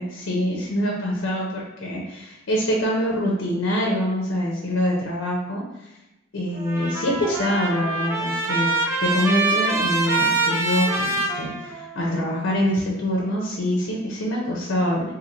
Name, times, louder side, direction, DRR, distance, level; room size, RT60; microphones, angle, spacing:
voice 1, 0.0-5.9 6.3-8.7 9.0-15.1, equal, 60° left, -2 dB, 0.5 m, -25 dB
Trumpet, 6.6-12.2, right 3 dB, 15° right, 0.4 m, -25 dB
3.0 x 2.6 x 2.5 m, 0.96 s
head